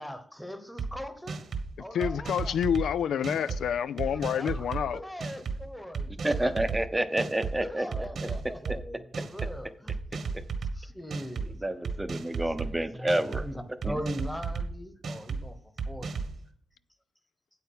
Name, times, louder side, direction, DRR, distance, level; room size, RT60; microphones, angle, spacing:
voice 1, 0.0-1.4 1.8-2.6 3.2-3.6 4.0-4.7 4.9-6.8 7.6-10.0 10.7-11.6 12.6-15.6 15.9-16.2, equal, 5° left, 1.1 m, -40 dB
sound 1, 0.8-0.9 1.3-1.7 2.0-2.9 3.2-3.6 4.0-4.8 5.2-5.6 5.9-6.8 7.2-7.5 7.9-8.8 9.1-9.5 9.9-10.7 11.1-11.5 11.8-12.7 13.1-13.4 13.8-14.7 15.0-15.4 15.8-16.3, right 5 dB, 60° right, 1.3 m, -33 dB
voice 2, 1.9-5.0, left 8 dB, 80° left, 0.3 m, -28 dB
voice 3, 6.1-8.3 11.6-13.4 13.8-13.9, right 1 dB, 10° right, 0.7 m, -29 dB
8.5 x 8.2 x 5.5 m
cardioid pair, 110°, 0 cm